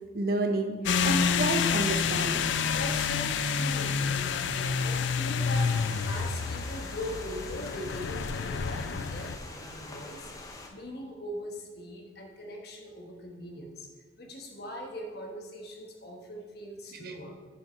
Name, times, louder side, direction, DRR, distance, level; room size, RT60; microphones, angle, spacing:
voice 1, 0.1-0.8 1.0-2.5 16.9-17.1, right 2 dB, 50° right, 6 dB, 0.6 m, -30 dB
sound 1, 0.9-9.4, left 6 dB, 70° left, 0.4 m, -28 dB
voice 2, 2.7-10.3 10.7-13.9 14.2-17.3, equal, 55° left, 1 dB, 1.2 m, -41 dB
sound 2, 5.5-10.7, left 2 dB, 15° left, 0.6 m, -43 dB
6.9 x 5.7 x 4.4 m, 1.4 s
head